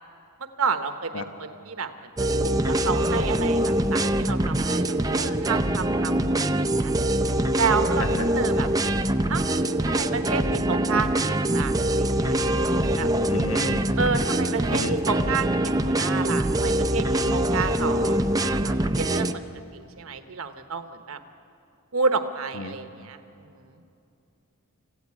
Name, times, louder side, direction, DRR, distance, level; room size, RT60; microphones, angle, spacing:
voice 1, 0.6-1.9 2.2-6.9 7.5-8.1 8.3-8.7 9.3-9.4 9.9-12.4 12.9-13.1 14.0-19.3 19.7-21.2 21.9-23.2, right 5 dB, 75° right, 8 dB, 1.0 m, -30 dB
sound 1, 2.2-19.3, right 1 dB, 15° right, 0.6 m, -24 dB
voice 2, 8.0-8.3 13.3-13.9 14.7-15.0 22.5-22.8, left 3 dB, 70° left, 7 dB, 1.3 m, -32 dB
25.5 x 15.5 x 9.7 m, 2.7 s
head